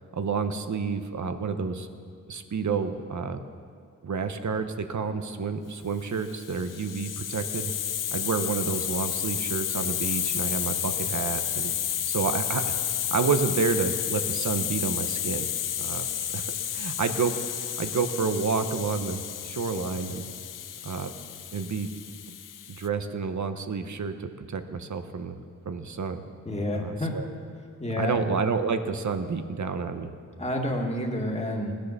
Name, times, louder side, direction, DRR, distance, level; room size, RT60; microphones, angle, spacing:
voice 1, 0.1-1.9 2.3-3.4 4.0-7.7 8.1-11.7 12.1-15.5 15.8-16.1 16.3-16.4 16.7-20.2 20.8-21.1 21.5-21.9 22.7-25.4 25.7-26.2 26.7-27.3 28.0-30.1, right 5 dB, 60° right, 8 dB, 1.0 m, -29 dB
Hiss, 6.2-22.9, left 10 dB, 75° left, 0.6 m, -31 dB
voice 2, 26.5-27.1 27.8-28.3 30.4-31.7, left 1 dB, 20° left, 0 dB, 2.2 m, -29 dB
18.0 x 10.5 x 6.8 m, 2.2 s
wide cardioid pair, 85°, 32 cm